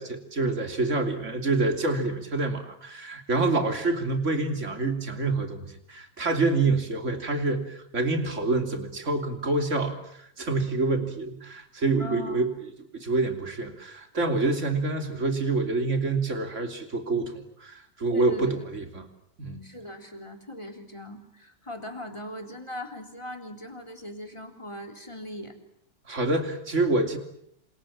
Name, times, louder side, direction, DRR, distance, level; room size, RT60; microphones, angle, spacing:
voice 1, 0.0-12.5 12.9-19.1 19.4-19.6 26.1-27.2, right 3 dB, 45° right, 6 dB, 3.4 m, -27 dB
voice 2, 12.0-12.4 18.1-18.6 19.6-25.5, left 1 dB, 15° left, 4 dB, 3.7 m, -39 dB
28.5 x 27.5 x 7.4 m, 0.72 s
omnidirectional pair, 1.8 m